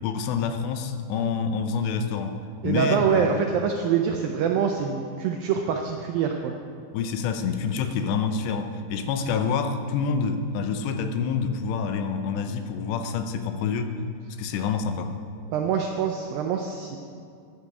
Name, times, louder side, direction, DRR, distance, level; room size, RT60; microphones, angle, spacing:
voice 1, 0.0-3.5 6.9-13.9 14.4-15.1, left 5 dB, 85° left, 7 dB, 3.0 m, -27 dB
voice 2, 2.6-6.6 15.5-17.0, right 7 dB, 85° right, 3 dB, 2.1 m, -25 dB
14.5 x 10.5 x 4.9 m, 2.4 s
omnidirectional pair, 5.0 m